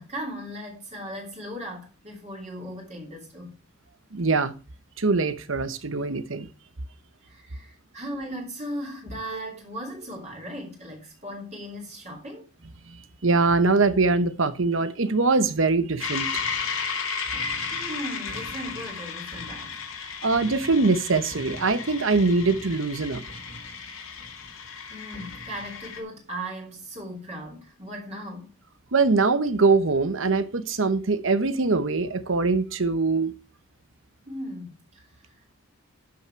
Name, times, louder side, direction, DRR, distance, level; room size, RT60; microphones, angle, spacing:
voice 1, 0.0-3.6 7.2-12.5 17.7-19.8 24.9-28.5 34.3-35.5, equal, 35° right, 2.8 m, -37 dB
voice 2, 4.1-4.5 5.0-6.5 13.2-16.3 20.2-23.2 28.9-33.4, right 3 dB, 70° right, 1.0 m, -22 dB
sound 1, 16.0-26.0, left 5 dB, 85° left, 2.4 m, -34 dB
11.5 x 5.8 x 4.6 m
head